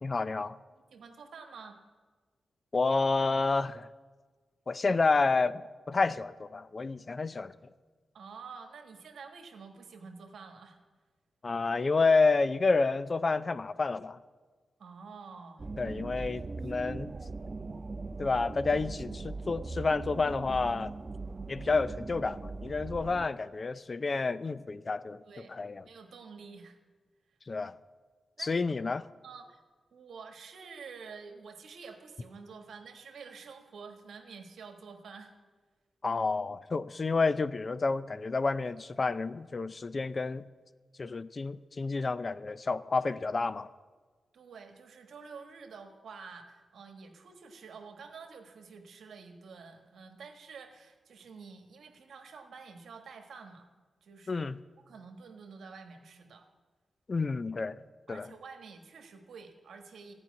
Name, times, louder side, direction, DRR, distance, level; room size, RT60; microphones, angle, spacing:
voice 1, 0.0-0.5 2.7-3.9 4.7-7.5 11.4-14.2 15.8-17.1 18.2-20.9 21.5-25.2 25.5-25.8 27.5-27.7 28.4-29.0 36.0-40.5 41.0-43.7 54.3-54.6 57.1-57.8 58.1-58.3, left 4 dB, 45° left, 16 dB, 0.5 m, -29 dB
voice 2, 0.7-1.8 8.1-10.8 14.8-15.7 16.1-16.9 25.2-25.5 25.8-26.8 28.4-28.7 29.2-29.6 29.9-35.3 44.3-53.7 54.0-54.5 54.9-56.5 58.1-60.1, right 5 dB, 80° right, 5 dB, 1.4 m, -49 dB
sound 1, 15.6-23.3, right 3 dB, 40° right, 0.5 m, -40 dB
14.0 x 5.5 x 9.3 m, 1.4 s
cardioid pair, 65°, 0 cm